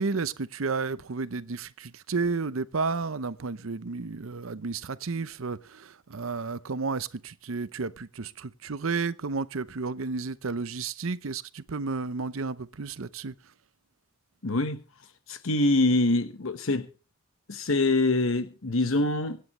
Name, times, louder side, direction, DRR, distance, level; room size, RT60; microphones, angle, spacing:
voice 1, 0.0-13.3, right 4 dB, 70° right, 0.7 m, -32 dB
voice 2, 14.4-14.8 15.3-16.9 17.5-19.4, left 2 dB, 70° left, 1.2 m, -24 dB
25.0 x 9.5 x 3.1 m
head